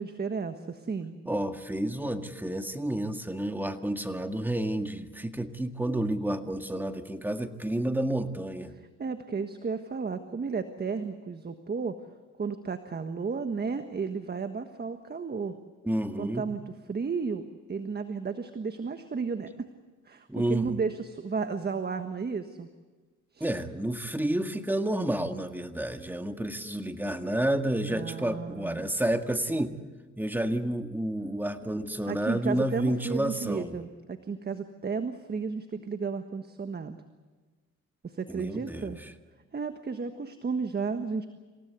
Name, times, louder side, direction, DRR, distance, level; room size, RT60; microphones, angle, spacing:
voice 1, 0.0-1.2 9.0-12.0 12.4-15.6 16.2-17.4 17.7-19.5 20.0-22.7 23.3-23.5 27.9-28.9 32.1-37.0 38.0-39.0 39.5-41.3, right 5 dB, 35° right, 8 dB, 1.5 m, -33 dB
voice 2, 1.2-8.7 15.8-16.5 20.3-20.7 23.4-29.7 30.2-33.7 38.3-39.1, right 1 dB, 5° right, 6 dB, 1.9 m, -30 dB
28.0 x 17.0 x 8.3 m, 1.3 s
cardioid pair, 90°, 30 cm